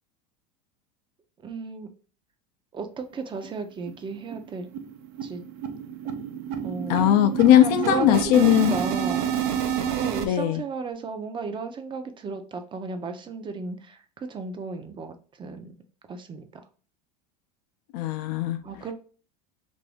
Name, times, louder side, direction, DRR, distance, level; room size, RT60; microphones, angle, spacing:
voice 1, 1.4-1.9 2.7-4.7 5.2-5.4 6.6-7.0 7.6-9.3 9.9-15.7 16.1-16.6 18.6-18.9, right 4 dB, 25° right, 7 dB, 0.5 m, -34 dB
sound 1, 3.0-3.1 3.4-3.5 3.9-4.1 4.3-10.3, right 8 dB, 65° right, 0.5 m, -29 dB
voice 2, 6.9-8.7 10.2-10.6 17.9-18.6, left 12 dB, 65° left, 7 dB, 0.4 m, -19 dB
2.6 x 2.6 x 3.3 m, 0.39 s
hypercardioid pair, 95°, 21 cm